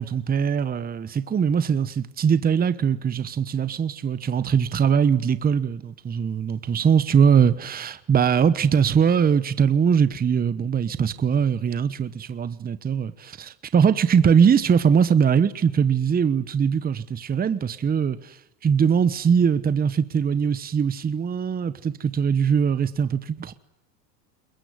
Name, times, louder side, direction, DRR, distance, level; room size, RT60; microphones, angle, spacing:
voice 1, 0.0-18.4 18.6-23.5, right 7 dB, 20° right, 1.1 m, -21 dB
22.5 x 21.0 x 9.6 m
supercardioid pair, 115°, 50 cm